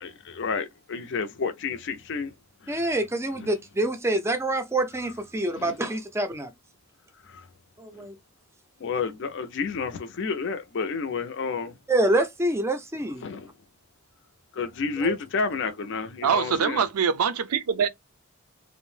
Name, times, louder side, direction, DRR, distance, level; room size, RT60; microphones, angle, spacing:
voice 1, 0.0-2.3 3.4-3.5 5.6-5.7 8.8-11.7 13.2-13.5 14.6-16.8, left 5 dB, 55° left, 0.5 m, -30 dB
voice 2, 2.7-6.5 7.8-8.2 11.9-13.2 15.0-15.1, right 1 dB, 10° right, 0.4 m, -26 dB
voice 3, 16.2-17.9, right 7 dB, 90° right, 0.4 m, -24 dB
2.6 x 2.0 x 3.1 m
head